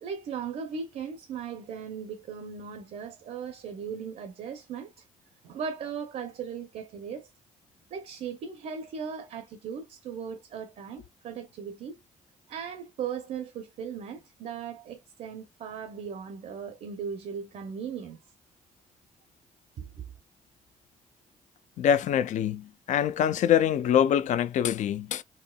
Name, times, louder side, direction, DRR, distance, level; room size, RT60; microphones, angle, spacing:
voice 1, 0.0-5.0 5.4-7.3 7.9-11.9 12.5-18.2 19.8-20.1, right 6 dB, 65° right, 0.6 m, -38 dB
voice 2, 21.8-25.2, left 9 dB, 65° left, 0.4 m, -24 dB
4.4 x 2.8 x 2.3 m
cardioid pair, 160°, 14 cm